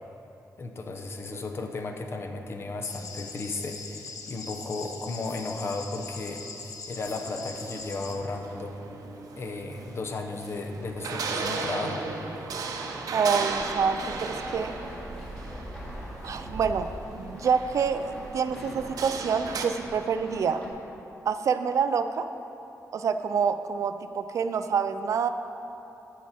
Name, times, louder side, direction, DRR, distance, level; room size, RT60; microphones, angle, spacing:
voice 1, 0.6-6.5 6.9-8.8 9.3-12.0, left 3 dB, 45° left, 4 dB, 0.8 m, -34 dB
sound 1, 2.8-8.1, left 4 dB, 75° left, 0.9 m, -41 dB
sound 2, 7.0-19.7, right 4 dB, 80° right, 0.8 m, -36 dB
voice 2, 13.1-14.7 16.2-16.9 17.1-20.6 21.3-22.3 22.9-25.3, right 6 dB, 60° right, 10 dB, 0.4 m, -27 dB
sound 3, 13.5-20.7, equal, 15° left, 1.6 m, -41 dB
14.5 x 5.9 x 4.2 m, 3.0 s
wide cardioid pair, 130°, 6 cm